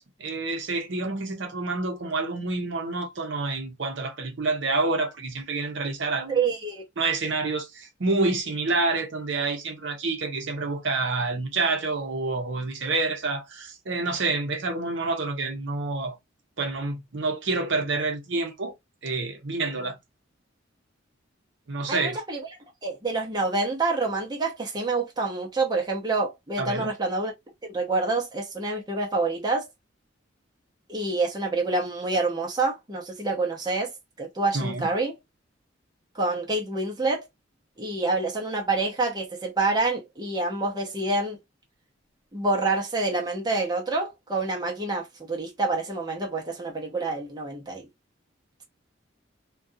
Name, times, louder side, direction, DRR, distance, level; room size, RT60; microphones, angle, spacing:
voice 1, 0.0-6.4 7.0-16.2 16.6-18.7 19.0-20.0 21.7-22.2 26.6-26.9 34.5-34.9, right 3 dB, 65° right, 0.7 m, -28 dB
voice 2, 6.3-6.8 21.9-22.4 22.8-27.3 27.6-29.7 30.9-33.9 34.2-35.1 36.1-37.2 37.8-41.4 42.3-47.9, right 3 dB, 20° right, 0.7 m, -27 dB
2.4 x 2.3 x 2.6 m
head